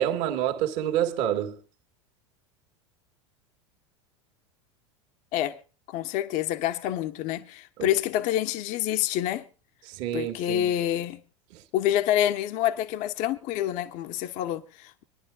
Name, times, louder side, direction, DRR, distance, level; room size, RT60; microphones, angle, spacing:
voice 1, 0.0-1.6 7.8-7.9 9.9-10.7 11.5-11.6, right 11 dB, 55° right, 1.8 m, -28 dB
voice 2, 5.9-9.5 10.1-11.2 11.7-15.0, left 12 dB, 50° left, 1.1 m, -27 dB
26.0 x 11.0 x 2.3 m
hypercardioid pair, 90°, 16 cm